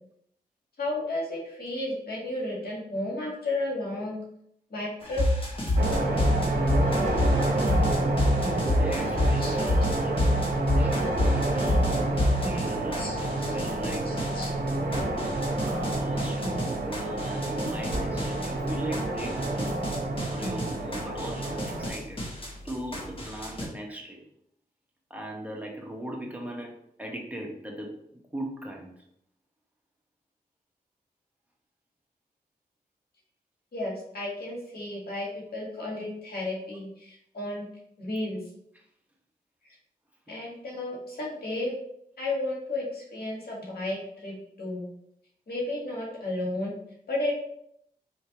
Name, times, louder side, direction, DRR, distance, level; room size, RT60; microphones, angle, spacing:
voice 1, 0.8-4.2 4.7-5.2 9.4-9.5 12.9-13.5 14.0-14.5 33.7-37.7 38.0-38.4 40.3-41.7 42.2-44.9 45.5-46.7 47.1-47.4, left 2 dB, 80° left, -4 dB, 1.6 m, -33 dB
sound 1, 5.0-23.6, left 1 dB, 35° left, 1.2 m, -29 dB
sound 2, 5.8-21.9, right 2 dB, 75° right, 0.7 m, -29 dB
voice 2, 8.8-10.2 10.8-10.9 11.3-12.0 12.2-14.1 15.7-19.7 20.3-22.2 22.6-24.2 25.1-26.7 27.0-28.0 28.3-28.9, right 1 dB, 10° right, -1 dB, 1.1 m, -38 dB
Gunshot gunfire, 12.0-14.4 14.9-17.4 17.9-23.1, right 1 dB, 50° right, 1.4 m, -43 dB
4.4 x 3.2 x 2.9 m, 0.73 s
cardioid pair, 65°, 16 cm